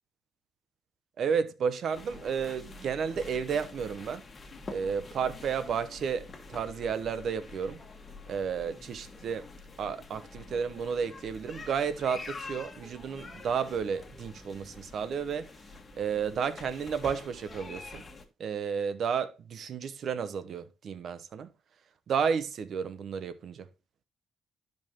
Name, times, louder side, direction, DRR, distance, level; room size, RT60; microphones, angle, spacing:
voice 1, 1.2-4.2 4.7-7.8 8.3-9.5 9.8-15.5 16.0-18.0 18.4-21.5 22.1-23.7, right 6 dB, 60° right, 0.8 m, -32 dB
sound 1, 1.9-18.3, left 3 dB, 30° left, 1.6 m, -47 dB
12.0 x 5.4 x 2.9 m
cardioid pair, 90°, 0 cm